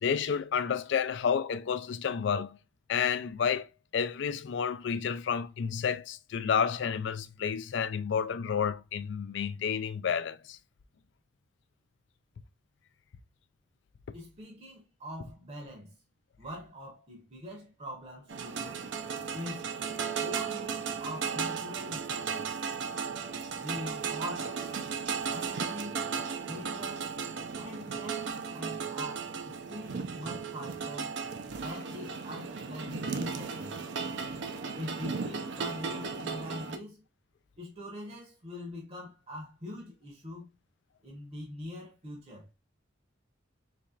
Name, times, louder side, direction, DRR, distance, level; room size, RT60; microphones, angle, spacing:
voice 1, 0.0-2.6 2.9-3.7 3.9-10.6 22.9-23.0 32.9-33.0, left 7 dB, 60° left, 0.4 m, -30 dB
voice 2, 14.1-16.0 16.4-18.8 19.3-19.7 20.2-22.5 23.6-24.8 25.3-26.0 26.5-27.1 27.5-31.1 31.6-33.8 34.7-37.0 37.6-40.5 41.0-42.5, left 1 dB, 30° right, 0.8 m, -43 dB
sound 1, 18.3-36.8, right 5 dB, 65° right, 0.5 m, -35 dB
4.2 x 3.1 x 2.3 m
head